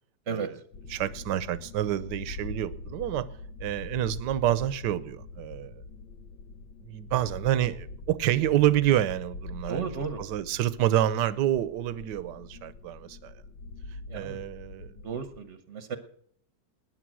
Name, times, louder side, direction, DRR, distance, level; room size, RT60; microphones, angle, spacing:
sound 1, 0.7-15.4, left 2 dB, 75° left, 1.6 m, -43 dB
voice 1, 0.9-3.3 3.6-5.8 6.8-9.9 10.2-13.3 14.1-14.9, right 12 dB, 70° right, 1.3 m, -28 dB
voice 2, 9.7-10.2 14.1-14.4 15.0-16.0, right 6 dB, 45° right, 1.1 m, -33 dB
19.5 x 9.8 x 6.2 m
omnidirectional pair, 2.0 m